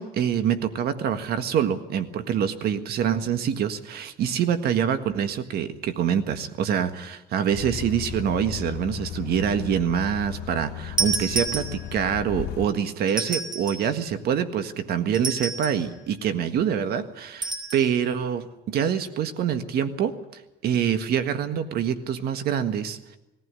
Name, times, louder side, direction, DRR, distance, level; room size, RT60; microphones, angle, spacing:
voice 1, 0.0-23.0, right 8 dB, 70° right, 10 dB, 1.6 m, -25 dB
sound 1, 7.5-12.7, left 11 dB, 80° left, 2.3 m, -35 dB
sound 2, 11.0-12.1 13.1-13.9 15.1-15.9 17.4-17.9, right 4 dB, 25° right, 4.5 m, -29 dB
20.0 x 15.0 x 9.7 m, 0.95 s
cardioid pair, 110°, 17 cm